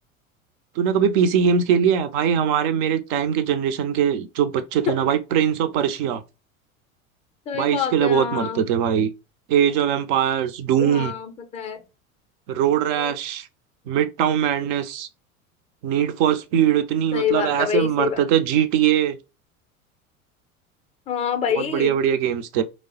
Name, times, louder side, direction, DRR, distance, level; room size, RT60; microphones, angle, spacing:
voice 1, 0.8-6.2 7.5-9.1 9.5-11.1 12.5-13.5 13.9-15.1 15.8-19.2 21.5-22.6, right 9 dB, 40° right, 0.4 m, -21 dB
voice 2, 7.5-8.7 10.8-11.8 12.8-13.1 17.1-18.2 21.1-21.9, left 8 dB, 15° left, 0.5 m, -26 dB
3.1 x 2.0 x 2.7 m
figure-of-eight pair, 85°, 42 cm